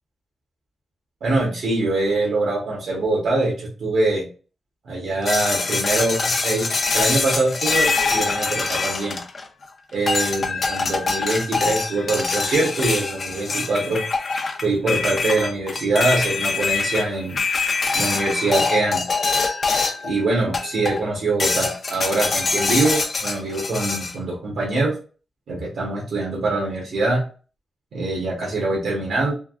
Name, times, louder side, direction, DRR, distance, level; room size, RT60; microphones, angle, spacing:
voice 1, 1.2-4.3 4.8-6.7 6.9-9.2 9.9-14.0 14.6-17.4 17.9-19.1 20.0-24.9 25.5-27.2 27.9-29.3, right 2 dB, 75° right, -3 dB, 1.1 m, -23 dB
sound 1, 5.3-9.6 10.1-20.1 20.5-21.0 21.4-24.1, left 4 dB, 45° left, 0.5 m, -24 dB
3.3 x 2.3 x 2.4 m, 0.36 s
wide cardioid pair, 140°, 0 cm